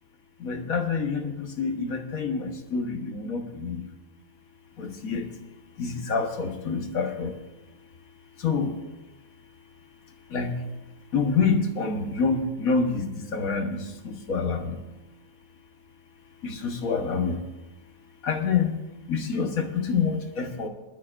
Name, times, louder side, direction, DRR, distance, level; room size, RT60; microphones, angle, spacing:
voice 1, 0.4-3.9 4.8-5.4 5.8-7.4 8.4-8.8 10.1-14.8 16.4-17.5 18.2-18.8 19.1-20.7, left 5 dB, 80° left, 4 dB, 1.8 m, -27 dB
20.5 x 12.0 x 2.5 m, 1.0 s
omnidirectional pair, 1.5 m